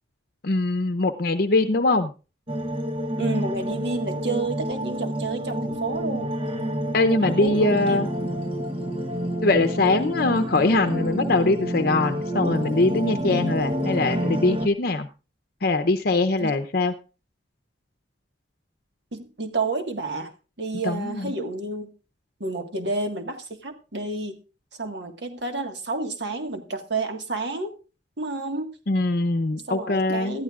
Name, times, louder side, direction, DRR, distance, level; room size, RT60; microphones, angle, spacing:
voice 1, 0.4-2.1 6.9-8.1 9.4-15.1 15.6-16.9 20.8-21.3 28.9-30.4, left 2 dB, 60° left, 8 dB, 0.7 m, -22 dB
sound 1, 2.5-14.7, equal, 30° right, 1.1 m, -28 dB
voice 2, 3.2-6.3 7.2-8.2 16.4-16.5 19.1-20.3 20.6-21.9 22.4-24.4 24.8-27.7 28.2-28.7 29.7-30.4, right 3 dB, 70° right, 5 dB, 1.7 m, -30 dB
19.5 x 13.5 x 2.5 m, 0.34 s
head